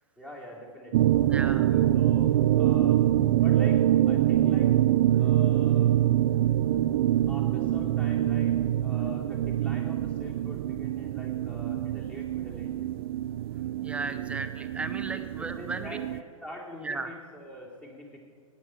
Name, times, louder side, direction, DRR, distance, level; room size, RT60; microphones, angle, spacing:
voice 1, 0.2-1.1 1.9-2.3 2.5-3.0 3.4-4.7 5.2-5.9 7.3-8.5 8.8-12.9 15.1-18.2, left 1 dB, 10° left, -2 dB, 2.8 m, -44 dB
sound 1, 0.9-16.2, right 12 dB, 45° right, 0.4 m, -25 dB
voice 2, 1.3-1.9 13.8-16.0 16.8-17.1, right 3 dB, 5° right, 8 dB, 0.7 m, -35 dB
16.5 x 9.9 x 4.6 m, 2.1 s
hypercardioid pair, 120°, 18 cm